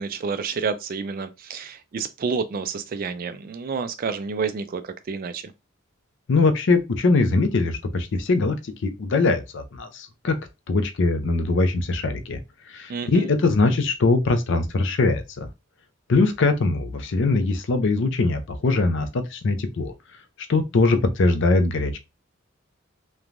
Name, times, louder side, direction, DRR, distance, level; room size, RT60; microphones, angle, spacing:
voice 1, 0.0-5.5 12.9-13.3, right 5 dB, 40° right, 0.3 m, -29 dB
voice 2, 6.3-8.6 8.8-10.4 10.7-12.4 12.7-15.5 16.1-19.9 20.5-22.0, left 3 dB, 60° left, 0.5 m, -21 dB
3.1 x 2.2 x 2.5 m
head